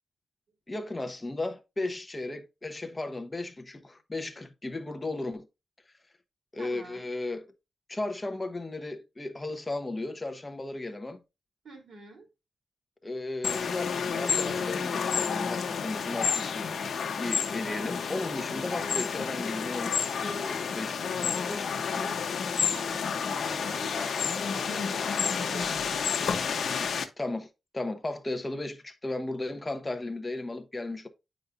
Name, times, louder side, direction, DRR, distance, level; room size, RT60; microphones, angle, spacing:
voice 1, 0.7-5.4 6.5-7.5 7.9-11.2 13.0-16.7 17.0-21.2 21.5-22.1 27.2-27.5 27.7-31.1, left 2 dB, 15° left, 0.9 m, -35 dB
voice 2, 6.6-7.1 11.6-12.3 18.5-18.9 22.7-26.0, right 3 dB, 60° right, 2.9 m, -46 dB
sound 1, 13.4-27.1, left 6 dB, 70° left, 1.0 m, -30 dB
9.6 x 5.1 x 2.6 m
wide cardioid pair, 175°, 0 cm